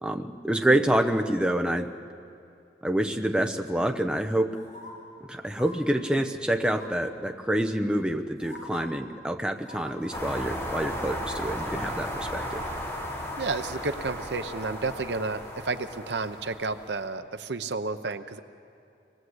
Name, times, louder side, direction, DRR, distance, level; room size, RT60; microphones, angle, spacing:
voice 1, 0.0-1.9 2.8-4.6 5.3-12.6, right 1 dB, 5° right, 4 dB, 0.9 m, -27 dB
sound 1, 4.5-4.9 5.5-5.8 6.7-7.1 7.9-8.0 8.4-8.8 9.6-10.8 11.2-11.3, left 1 dB, 45° left, 7.0 m, -44 dB
sound 2, 10.1-17.1, equal, 15° left, 4.5 m, -35 dB
voice 2, 13.4-18.4, right 3 dB, 75° right, 10 dB, 0.9 m, -31 dB
26.5 x 19.5 x 8.1 m, 2.5 s
head